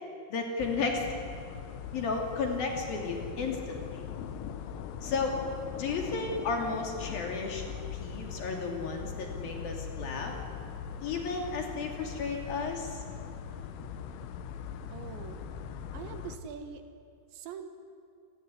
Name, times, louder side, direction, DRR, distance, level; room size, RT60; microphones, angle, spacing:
voice 1, 0.3-1.0 1.9-4.0 5.0-5.3 5.8-7.6 8.0-10.3 11.0-13.0, left 4 dB, 50° left, 2 dB, 4.3 m, -33 dB
sound 1, 0.6-16.4, left 7 dB, 85° left, 3.8 m, -41 dB
voice 2, 14.9-15.4 15.9-16.8 17.3-17.7, right 7 dB, 70° right, 8 dB, 3.5 m, -43 dB
27.5 x 18.5 x 9.8 m, 2.4 s
omnidirectional pair, 5.6 m